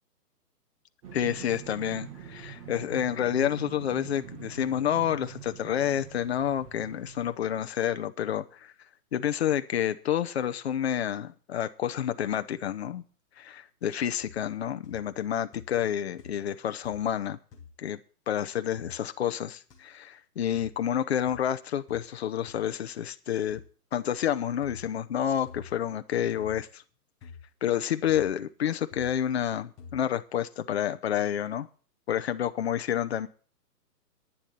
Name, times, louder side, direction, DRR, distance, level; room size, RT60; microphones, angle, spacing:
sound 1, 1.0-7.3, right 8 dB, 20° right, 1.4 m, -44 dB
voice 1, 1.1-8.7 9.1-13.0 13.4-17.4 17.8-18.0 18.3-23.6 23.9-26.8 27.6-31.7 32.1-33.3, left 10 dB, 40° left, 10 dB, 0.8 m, -29 dB
sound 2, 14.2-14.6 14.8-15.3 15.5-15.9 16.2-16.5 16.8-17.2 17.5-17.7 18.8-18.9 19.7-19.8 20.5-20.8 21.3-21.4 21.9-22.1 22.5-22.6 23.5-23.7 24.6-24.8 25.5-25.8 26.4-26.6 27.2-27.4 28.1-28.4 28.9-29.1 29.8-30.0, left 5 dB, 10° left, 0.8 m, -48 dB
10.5 x 7.2 x 8.0 m, 0.39 s
hypercardioid pair, 165°, 47 cm